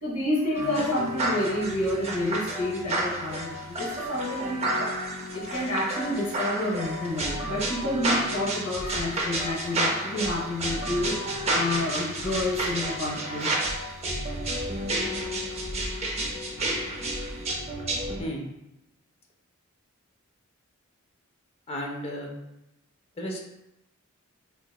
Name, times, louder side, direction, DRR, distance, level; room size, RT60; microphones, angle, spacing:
voice 1, 0.0-5.0 5.3-13.5, left 1 dB, 85° left, -4 dB, 0.9 m, -29 dB
sound 1, 0.5-18.2, right 1 dB, 30° right, 0.5 m, -30 dB
voice 2, 21.7-22.3 23.2-23.4, equal, 30° left, 0 dB, 0.5 m, -33 dB
3.8 x 2.8 x 2.3 m, 0.89 s
head